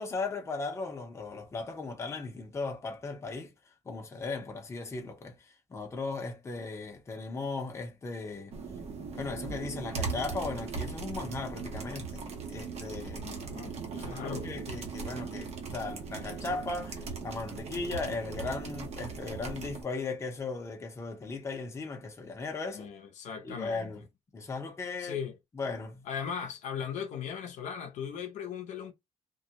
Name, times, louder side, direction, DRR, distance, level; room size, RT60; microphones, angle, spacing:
voice 1, 0.0-3.5 3.8-8.5 9.1-13.3 14.0-22.9 23.4-24.0 24.3-25.2 25.5-26.1, left 3 dB, 25° left, 0.6 m, -37 dB
sound 1, 8.5-19.8, right 5 dB, 60° right, 0.7 m, -39 dB
voice 2, 13.1-14.5 22.7-23.9 25.0-25.4 26.1-28.9, left 7 dB, 85° left, 0.5 m, -38 dB
2.2 x 2.0 x 2.7 m
cardioid pair, 150°, 12 cm